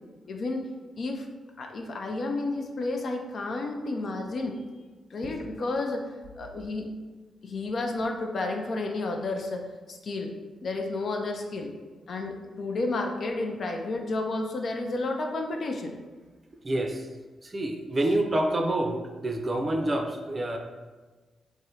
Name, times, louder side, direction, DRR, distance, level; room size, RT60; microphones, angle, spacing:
voice 1, 0.3-0.7 1.0-1.3 1.6-4.6 5.1-6.0 6.4-6.9 7.4-10.3 10.6-11.7 12.1-15.9, left 2 dB, 60° left, 3 dB, 0.4 m, -31 dB
voice 2, 16.6-17.1 17.4-20.6, right 1 dB, 40° right, 3 dB, 0.4 m, -27 dB
3.4 x 2.1 x 2.8 m, 1.3 s
hypercardioid pair, 45°, 0 cm